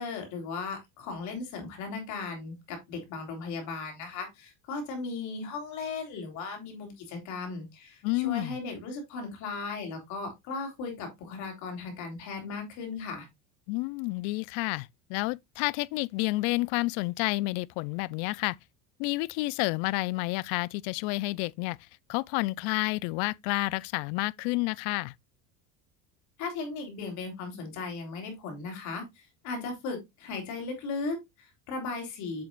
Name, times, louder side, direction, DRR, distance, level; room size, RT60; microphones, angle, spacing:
voice 1, 0.0-13.3 26.4-32.4, left 4 dB, 55° left, 3.5 m, -37 dB
voice 2, 8.0-8.6 13.7-18.6 19.0-21.8 22.1-25.1, left 22 dB, 70° left, 0.5 m, -30 dB
7.7 x 7.1 x 2.4 m
cardioid pair, 155°, 36 cm